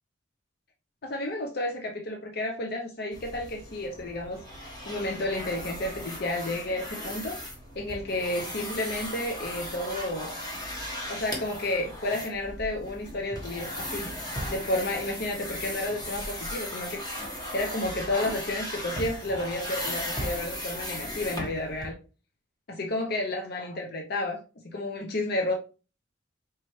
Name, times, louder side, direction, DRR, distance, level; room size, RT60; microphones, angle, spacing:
voice 1, 1.0-7.4 7.7-10.4 11.1-14.1 14.5-22.0 22.7-25.5, left 1 dB, 55° left, 0.6 m, -31 dB
sound 1, 3.1-21.9, left 1 dB, 20° left, 1.1 m, -37 dB
4.6 x 3.1 x 3.0 m
head